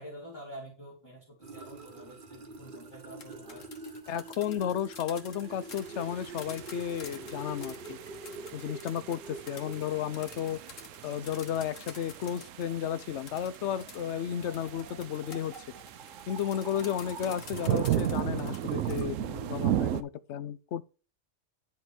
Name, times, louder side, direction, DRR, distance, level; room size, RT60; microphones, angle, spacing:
voice 1, 0.0-3.7, equal, 20° left, 2.1 m, -47 dB
sound 1, 1.4-19.1, right 3 dB, 45° right, 1.2 m, -47 dB
sound 2, 3.0-12.7 13.3-19.0, left 5 dB, 85° left, 1.7 m, -49 dB
voice 2, 4.1-8.0 8.5-10.6 11.0-15.5 16.3-20.8, left 9 dB, 70° left, 0.9 m, -33 dB
sound 3, 5.7-20.0, right 12 dB, 85° right, 1.0 m, -36 dB
10.5 x 3.7 x 6.0 m
omnidirectional pair, 1.3 m